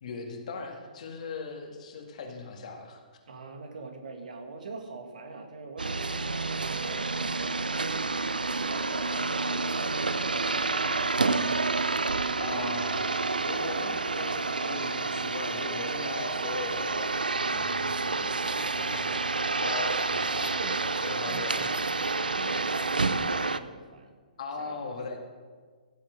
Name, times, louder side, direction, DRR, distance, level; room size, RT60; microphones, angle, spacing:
voice 1, 0.0-3.0 12.4-19.3 19.6-20.6 21.0-21.9 24.4-25.2, left 4 dB, 50° left, 3 dB, 2.1 m, -39 dB
voice 2, 3.3-11.4 20.3-24.2 24.6-25.2, right 3 dB, 65° right, 4 dB, 1.9 m, -43 dB
sound 1, 5.8-23.6, right 3 dB, 80° right, 0.5 m, -29 dB
16.0 x 7.1 x 5.2 m, 1.5 s
figure-of-eight pair, 125°, 5 cm